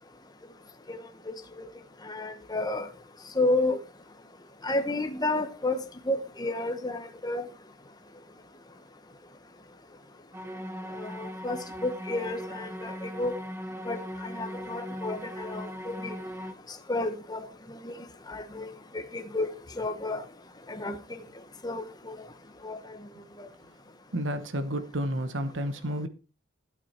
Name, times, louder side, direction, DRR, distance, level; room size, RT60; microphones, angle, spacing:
voice 1, 0.9-1.7 2.0-2.9 3.3-3.8 4.6-7.5 11.0-13.3 13.9-16.1 16.7-19.5 19.8-20.2 20.7-21.0 21.6-22.2 22.6-23.0 23.4-23.5, left 2 dB, 20° left, 0.9 m, -32 dB
sound 1, 10.3-16.5, equal, 10° right, 0.8 m, -39 dB
voice 2, 24.1-26.1, equal, 65° right, 1.1 m, -31 dB
12.5 x 8.4 x 4.3 m
head